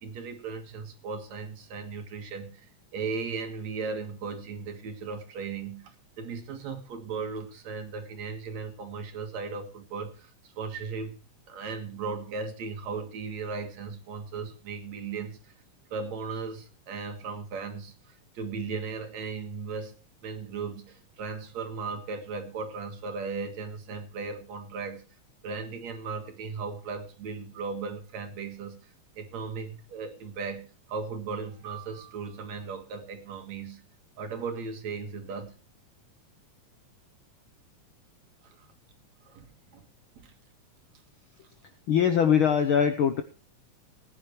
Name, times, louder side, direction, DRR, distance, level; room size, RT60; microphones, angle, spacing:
voice 1, 0.0-10.3 10.6-15.5 15.9-25.1 25.4-28.9 29.2-33.8 34.2-35.5 38.4-38.7 39.3-39.8 40.2-40.3, right 5 dB, 65° right, 6 dB, 3.0 m, -37 dB
voice 2, 41.9-43.2, left 8 dB, 70° left, 7 dB, 1.3 m, -22 dB
20.0 x 10.0 x 3.2 m, 0.34 s
omnidirectional pair, 3.4 m